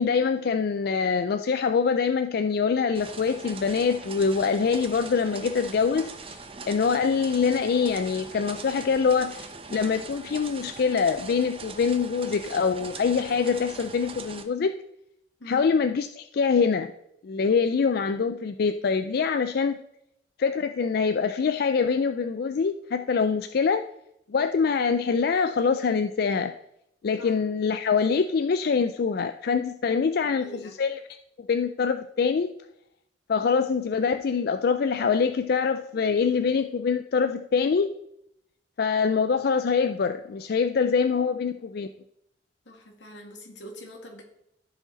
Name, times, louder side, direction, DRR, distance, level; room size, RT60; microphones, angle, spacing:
voice 1, 0.0-14.8 15.5-16.9 17.2-19.8 20.4-23.8 24.3-26.5 27.0-31.0 31.4-32.5 33.3-38.0 38.8-41.9, left 5 dB, 55° left, 9 dB, 0.4 m, -24 dB
sound 1, 3.0-14.4, right 4 dB, 30° right, 0.8 m, -41 dB
voice 2, 30.2-30.8 42.7-44.2, equal, 85° left, 2 dB, 2.0 m, -44 dB
14.5 x 4.9 x 3.9 m, 0.78 s
head